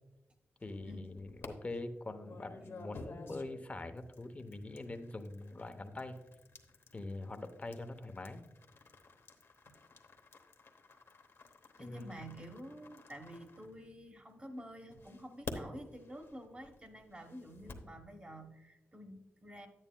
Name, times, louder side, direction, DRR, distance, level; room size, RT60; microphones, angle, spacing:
sound 1, 0.6-1.5 2.2-14.3 14.9-17.9, left 3 dB, 55° left, 0.9 m, -52 dB
voice 1, 0.6-6.2 6.9-8.4 11.8-12.1, left 2 dB, 25° left, 8 dB, 0.7 m, -43 dB
voice 2, 11.8-19.7, equal, 25° right, 4 dB, 1.1 m, -49 dB
9.9 x 9.1 x 2.2 m, 1.0 s
wide cardioid pair, 100°, 5 cm